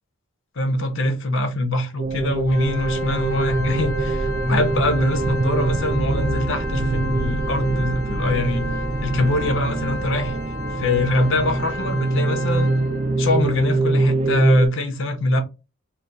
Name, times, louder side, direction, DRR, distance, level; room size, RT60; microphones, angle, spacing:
voice 1, 0.6-8.7 9.0-10.4 10.8-12.7 13.2-15.4, left 1 dB, 55° left, 0.6 m, -23 dB
sound 1, 2.0-14.7, right 2 dB, 25° right, 0.3 m, -24 dB
Organ, 2.5-13.2, left 1 dB, 85° left, 0.8 m, -33 dB
3.8 x 2.3 x 2.2 m
head